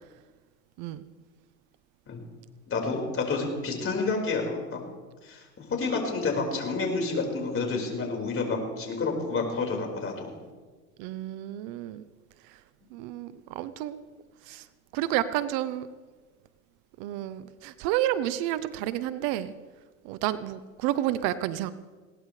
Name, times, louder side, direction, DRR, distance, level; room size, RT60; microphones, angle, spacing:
voice 1, 2.7-4.8 5.2-10.4, left 3 dB, 30° left, 1 dB, 5.0 m, -29 dB
voice 2, 11.0-12.1 12.9-14.0 14.5-14.6 14.9-15.9 17.0-19.5 20.0-21.7, right 13 dB, 60° right, 14 dB, 0.9 m, -30 dB
21.0 x 18.0 x 3.3 m, 1.4 s
supercardioid pair, 100°, 42 cm